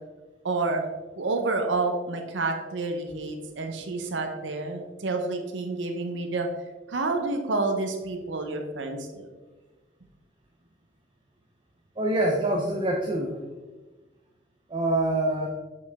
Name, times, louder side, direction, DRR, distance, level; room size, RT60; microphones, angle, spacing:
voice 1, 0.4-0.9 1.2-6.5 6.9-9.3, right 3 dB, 70° right, 4 dB, 0.7 m, -29 dB
voice 2, 12.0-13.4 14.7-15.5, right 1 dB, 25° right, 1 dB, 0.6 m, -25 dB
6.7 x 5.2 x 3.4 m, 1.3 s
head